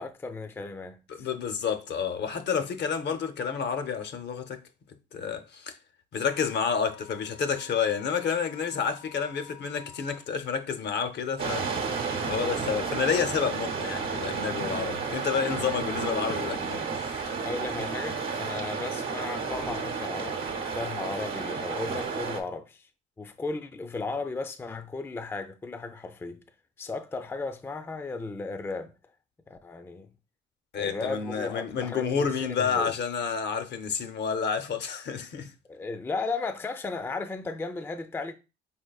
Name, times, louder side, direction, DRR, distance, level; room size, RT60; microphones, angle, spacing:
voice 1, 0.0-1.3 17.4-20.5 20.7-22.9 23.2-26.4 26.8-28.9 29.5-30.1 30.8-32.9 35.7-38.3, left 3 dB, 10° left, 0.3 m, -35 dB
voice 2, 1.1-4.6 5.1-5.8 6.1-11.7 12.3-17.2 30.7-35.5, left 6 dB, 60° left, 0.6 m, -30 dB
Wind instrument woodwind instrument, 6.3-10.2, left 11 dB, 90° left, 1.2 m, -51 dB
sound 1, 11.4-22.4, right 5 dB, 75° right, 0.8 m, -32 dB
4.4 x 3.7 x 2.3 m
cardioid pair, 90°, 20 cm